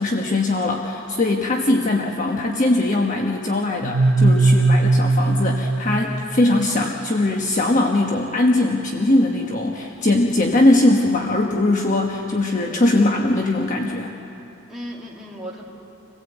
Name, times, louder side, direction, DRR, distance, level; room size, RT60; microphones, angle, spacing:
voice 1, 0.0-14.1, left 2 dB, 40° left, 1 dB, 1.2 m, -20 dB
sound 1, 3.8-6.6, right 2 dB, 55° right, 1.0 m, -18 dB
voice 2, 4.4-4.9 14.7-15.6, equal, ahead, -6 dB, 2.5 m, -37 dB
27.0 x 16.5 x 8.1 m, 2.9 s
head